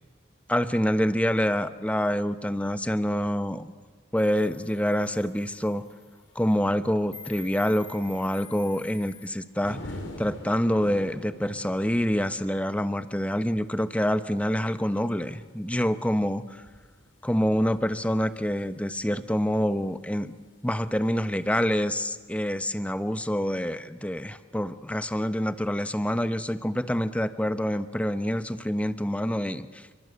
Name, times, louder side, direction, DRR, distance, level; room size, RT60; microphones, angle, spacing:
voice 1, 0.5-3.7 4.1-5.8 6.3-9.8 10.2-16.6 17.2-20.3 20.6-29.9, equal, 5° left, 11 dB, 1.1 m, -26 dB
sound 1, 4.2-9.3, left 5 dB, 30° left, 4.7 m, -48 dB
sound 2, 9.6-19.8 21.2-21.4, left 1 dB, 85° left, 5.8 m, -45 dB
28.0 x 24.0 x 8.1 m, 1.4 s
head